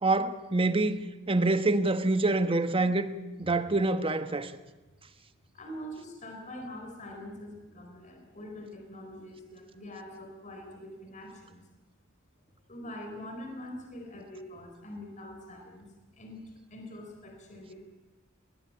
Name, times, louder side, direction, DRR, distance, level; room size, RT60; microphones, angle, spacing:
voice 1, 0.0-3.1 3.4-4.5, right 2 dB, 25° right, 1.2 m, -26 dB
voice 2, 5.5-11.7 12.7-15.9 16.2-17.8, left 1 dB, 40° left, 4.3 m, -44 dB
22.0 x 19.0 x 8.7 m
head